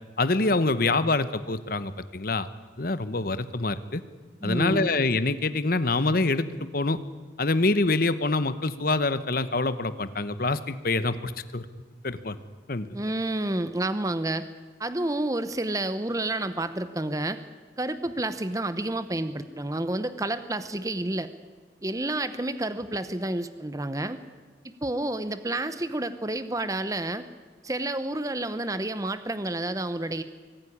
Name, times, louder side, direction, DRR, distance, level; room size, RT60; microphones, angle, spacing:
voice 1, 0.2-2.5 2.8-4.0 4.4-7.0 7.4-11.7 12.0-12.4 12.7-12.9, left 3 dB, 50° left, 13 dB, 1.0 m, -25 dB
voice 2, 4.4-4.9 12.9-14.5 14.8-17.4 17.8-21.3 21.8-24.2 24.6-27.3 27.6-30.2, right 1 dB, 15° right, 12 dB, 0.8 m, -29 dB
24.0 x 15.0 x 9.9 m, 1.4 s
head